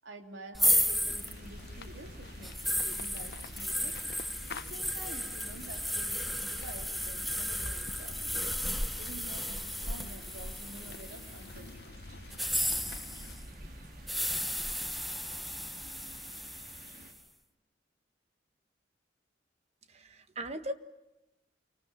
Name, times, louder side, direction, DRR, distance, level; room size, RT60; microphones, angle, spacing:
voice 1, 0.0-4.0 4.5-8.3 8.9-12.1, right 1 dB, 85° right, 5 dB, 3.2 m, -49 dB
sound 1, 0.5-11.5 12.3-17.1, equal, ahead, 1.0 m, -34 dB
sound 2, 0.7-17.1, right 1 dB, 50° right, 4.5 m, -53 dB
sound 3, 1.0-13.4, left 3 dB, 60° left, 1.0 m, -48 dB
voice 2, 19.9-20.7, right 1 dB, 35° right, 9 dB, 1.5 m, -38 dB
28.0 x 25.0 x 7.3 m, 0.98 s
head